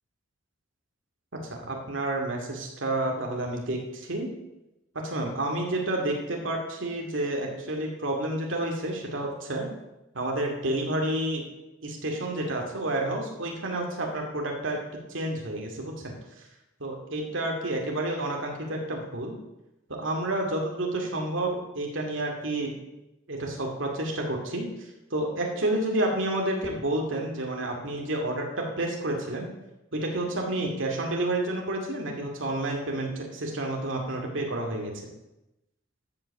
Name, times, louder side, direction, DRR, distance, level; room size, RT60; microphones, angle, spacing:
voice 1, 1.5-4.3 4.9-9.7 10.1-11.4 11.8-14.8 15.1-16.2 16.8-19.4 20.0-22.7 23.3-24.7 25.1-29.5 29.9-34.9, right 1 dB, 80° right, 1 dB, 2.3 m, -30 dB
13.0 x 5.8 x 7.0 m, 0.95 s
head